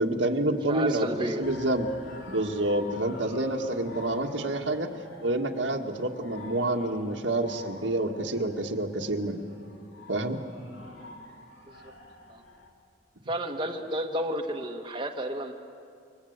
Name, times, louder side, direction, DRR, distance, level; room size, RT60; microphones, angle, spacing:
voice 1, 0.0-1.9 2.3-4.9 5.2-9.4 10.1-10.4, right 1 dB, 85° right, 3 dB, 1.9 m, -28 dB
voice 2, 0.7-1.4 11.8-11.9 12.3-12.4 13.3-15.5, right 1 dB, 25° right, 2 dB, 1.5 m, -31 dB
sound 1, 1.4-12.7, left 2 dB, 85° left, 3.3 m, -47 dB
28.5 x 25.0 x 8.2 m, 2.4 s
head